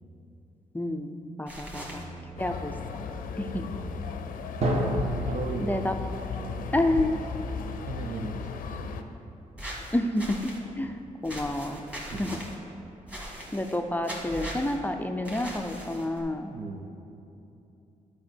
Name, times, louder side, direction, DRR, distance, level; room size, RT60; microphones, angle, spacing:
voice 1, 0.7-2.0 2.4-2.7 3.4-3.6 5.6-5.9 6.7-7.2 9.9-12.4 13.5-16.5, left 1 dB, 10° left, 5 dB, 0.4 m, -29 dB
sound 1, 1.5-2.0 9.6-10.6 11.2-12.5 13.1-13.8 14.0-14.8 15.2-16.2, equal, 10° right, 1.6 m, -39 dB
voice 2, 1.7-2.7 3.5-4.1 5.3-6.1 6.3-6.7 7.9-8.4 8.7-9.1 10.8-11.0 12.1-12.5 16.5-16.8, right 4 dB, 75° right, 6 dB, 0.7 m, -39 dB
sound 2, 2.4-9.0, left 5 dB, 85° left, 0.5 m, -35 dB
Drum, 4.6-8.3, right 1 dB, 50° right, 1.3 m, -32 dB
10.5 x 4.8 x 4.4 m, 2.8 s
cardioid pair, 95°, 14 cm